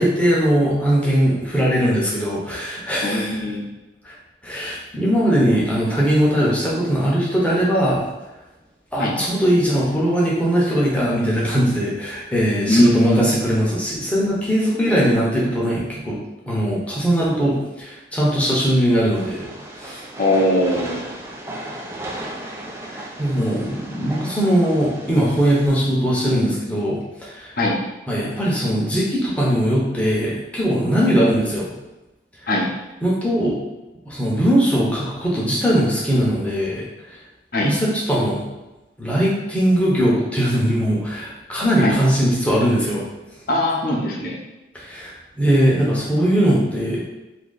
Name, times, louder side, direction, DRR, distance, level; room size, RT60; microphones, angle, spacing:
voice 1, 0.0-3.4 4.0-4.1 4.4-8.1 8.9-16.2 16.5-19.5 19.8-20.0 22.9-27.5 28.1-31.7 33.0-33.6 34.1-37.2 37.6-38.4 39.0-43.0 44.7-47.0, equal, 5° left, -6 dB, 0.8 m, -20 dB
voice 2, 3.0-3.6 9.0-9.1 12.7-13.2 14.9-15.4 20.2-21.0 27.6-27.8 32.5-32.7 37.5-37.7 41.8-42.0 43.5-44.4, left 1 dB, 50° left, -2 dB, 0.6 m, -20 dB
Train, 19.1-25.7, right 1 dB, 15° right, 0.3 m, -35 dB
2.8 x 2.6 x 3.8 m, 1.0 s
head